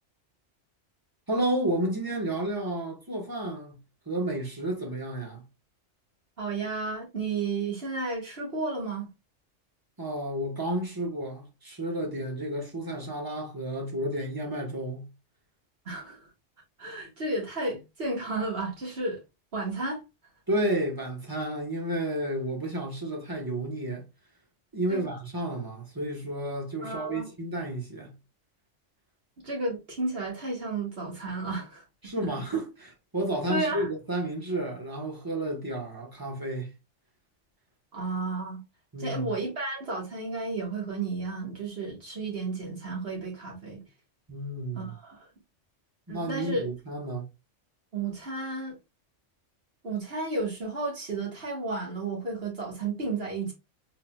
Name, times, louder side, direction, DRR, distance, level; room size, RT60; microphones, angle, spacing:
voice 1, 1.3-3.8 4.1-5.4 10.0-15.1 20.5-24.0 24.7-28.1 32.0-36.7 38.9-39.3 44.3-44.9 46.1-47.2, right 1 dB, 20° right, 1.2 m, -31 dB
voice 2, 6.4-9.1 15.9-16.3 16.8-19.2 19.5-20.0 24.9-25.1 26.8-27.3 29.4-31.8 32.2-32.3 33.5-33.9 37.9-38.6 39.0-43.8 44.7-45.3 46.1-46.7 47.9-48.8 49.8-53.5, right 3 dB, 50° right, 1.9 m, -32 dB
3.9 x 3.8 x 2.3 m
omnidirectional pair, 1.3 m